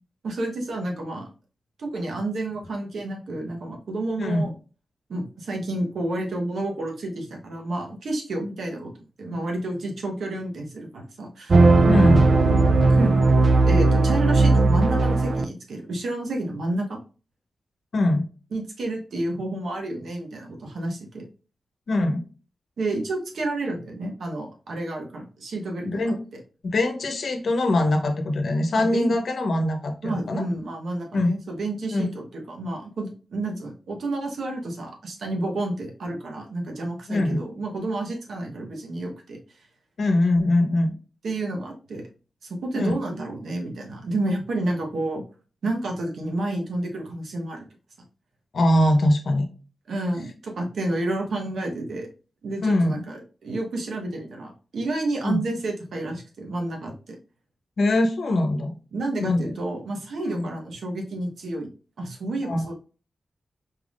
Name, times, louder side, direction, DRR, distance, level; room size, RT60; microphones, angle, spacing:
voice 1, 0.2-1.3 1.8-4.5 5.1-12.4 12.9-13.3 13.7-17.0 18.5-21.2 22.8-26.4 28.8-29.1 30.0-39.6 41.2-42.0 42.4-45.2 45.6-47.7 49.9-52.1 52.4-57.2 58.9-61.7 62.0-62.7, right 2 dB, 80° right, 1 dB, 1.1 m, -30 dB
voice 2, 4.2-4.5 11.8-12.2 17.9-18.2 21.9-22.2 25.8-26.2 26.6-30.4 31.1-31.3 31.9-32.1 37.1-37.4 40.0-40.9 42.7-42.9 48.5-49.5 52.6-53.0 55.2-55.4 57.8-58.7 59.2-59.5 60.3-60.5 62.4-62.6, left 1 dB, 70° left, 5 dB, 0.9 m, -22 dB
sound 1, 11.5-15.4, right 3 dB, 55° right, 0.4 m, -17 dB
4.5 x 3.6 x 2.4 m, 0.36 s
wide cardioid pair, 90°, 0 cm